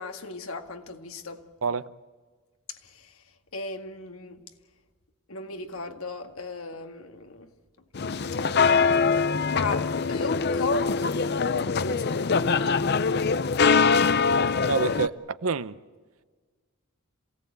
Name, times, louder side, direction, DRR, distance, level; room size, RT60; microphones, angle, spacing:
voice 1, 0.0-1.5 2.7-3.2 3.5-4.4 5.3-7.5 9.5-11.4 11.8-12.8, left 3 dB, 80° left, 2.0 m, -36 dB
voice 2, 1.6-1.9 14.6-15.8, right 4 dB, 75° right, 0.8 m, -27 dB
sound 1, 7.9-15.1, left 5 dB, 50° left, 0.6 m, -23 dB
27.5 x 17.0 x 8.2 m
head